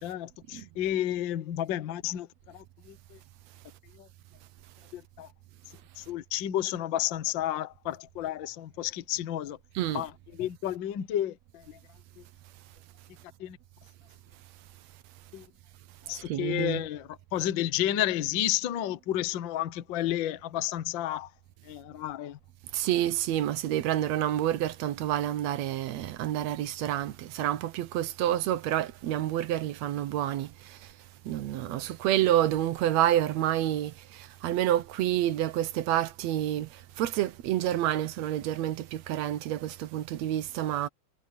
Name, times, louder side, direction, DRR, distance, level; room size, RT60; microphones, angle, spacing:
voice 1, 0.0-3.2 4.0-4.1 4.9-5.3 6.0-9.6 9.9-11.8 12.2-12.3 13.4-13.6 15.3-15.5 16.1-21.3 21.6-22.4, left 12 dB, 65° left, 1.2 m, -31 dB
voice 2, 16.1-16.8 22.7-30.9 31.3-40.9, right 12 dB, 70° right, 1.9 m, -28 dB
omnidirectional pair, 3.5 m